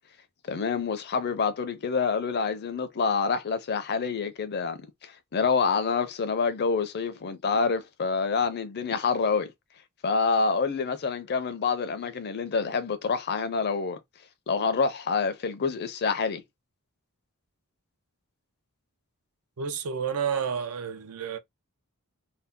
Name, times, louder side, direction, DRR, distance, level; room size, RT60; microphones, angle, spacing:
voice 1, 0.5-9.5 10.0-14.0 14.5-16.4, left 5 dB, 50° left, 0.5 m, -27 dB
voice 2, 19.6-21.4, right 7 dB, 85° right, 0.6 m, -30 dB
2.7 x 2.1 x 3.5 m
head